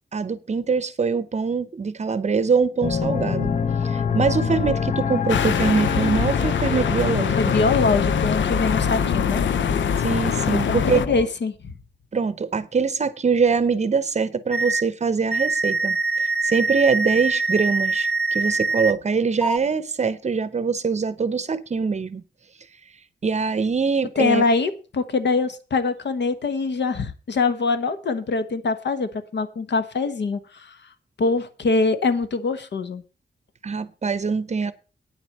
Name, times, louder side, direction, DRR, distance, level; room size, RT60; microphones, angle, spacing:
voice 1, 0.1-3.5 3.8-7.5 10.0-11.1 12.1-22.2 23.2-24.4 33.6-34.7, right 5 dB, 35° right, 0.7 m, -23 dB
sound 1, 2.8-11.3, left 6 dB, 40° left, 0.7 m, -26 dB
sound 2, 5.3-11.1, left 8 dB, 85° left, 0.6 m, -24 dB
voice 2, 7.4-9.4 10.5-11.5 24.2-30.8 31.2-33.0, left 4 dB, 70° left, 1.2 m, -23 dB
sound 3, 14.5-14.8 15.3-18.9 19.4-19.6, right 3 dB, 5° left, 0.7 m, -23 dB
9.2 x 7.8 x 6.5 m
wide cardioid pair, 155°, 19 cm